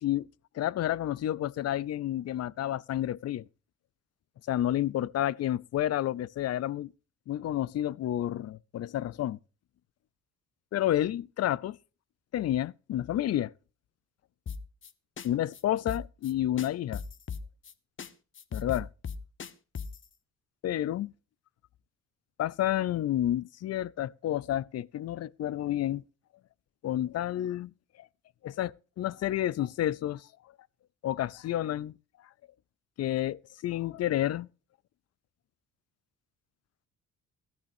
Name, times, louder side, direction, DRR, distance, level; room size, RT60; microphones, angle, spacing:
voice 1, 0.5-3.4 4.5-6.9 7.3-9.4 10.7-11.8 12.3-13.5 15.2-17.0 18.5-18.9 20.6-21.1 22.4-26.0 26.8-27.7 28.4-30.3 31.0-32.0 33.0-34.5, left 12 dB, 55° left, 0.5 m, -30 dB
sound 1, 14.5-14.9 15.2-15.3 15.5-15.6 15.9-16.3 16.6-17.7 18.0-18.1 18.3-20.0, left 6 dB, 40° left, 1.1 m, -37 dB
13.5 x 13.5 x 2.7 m
cardioid pair, 90°, 30 cm